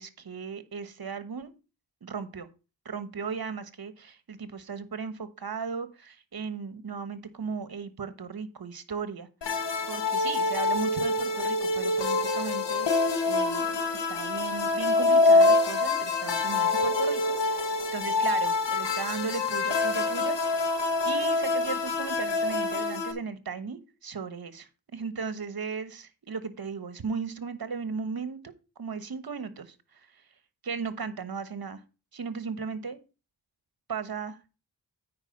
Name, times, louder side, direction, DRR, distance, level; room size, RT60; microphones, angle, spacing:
voice 1, 0.0-1.5 2.0-2.5 2.8-9.3 9.9-12.9 13.3-20.3 21.0-28.5 28.8-30.1 30.6-31.8 32.1-33.0 33.9-34.6, right 5 dB, 55° right, 12 dB, 1.2 m, -36 dB
sound 1, 9.4-23.1, left 3 dB, 75° left, 1.5 m, -25 dB
9.0 x 5.1 x 5.2 m, 0.32 s
cardioid pair, 45°, 43 cm